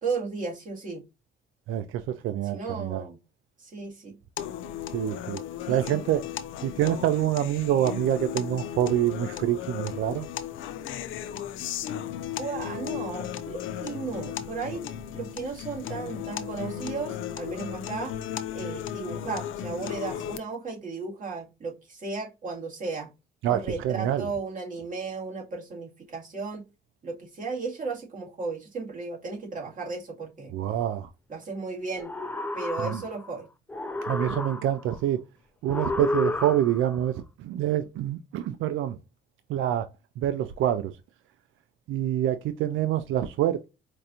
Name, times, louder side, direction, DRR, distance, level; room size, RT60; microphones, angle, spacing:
voice 1, 0.0-1.0 2.5-3.2 3.6-4.2 5.6-6.0 12.4-14.8 15.1-18.2 18.5-23.1 23.5-26.6 27.0-30.6 31.3-32.1 32.5-33.5, right 4 dB, 40° right, 1.9 m, -35 dB
voice 2, 1.7-3.0 4.9-5.4 5.7-6.2 6.6-10.3 23.4-24.3 30.5-31.1 32.8-33.0 34.1-35.2 35.6-37.1 37.4-39.0 39.5-39.9 40.2-40.9 41.9-43.7, right 11 dB, 85° right, 0.4 m, -26 dB
sound 1, 4.4-20.4, left 10 dB, 80° left, 0.5 m, -35 dB
sound 2, 31.9-33.3 33.7-34.9 35.7-37.0, left 2 dB, 10° left, 0.5 m, -31 dB
4.6 x 2.5 x 2.7 m
cardioid pair, 90°, 20 cm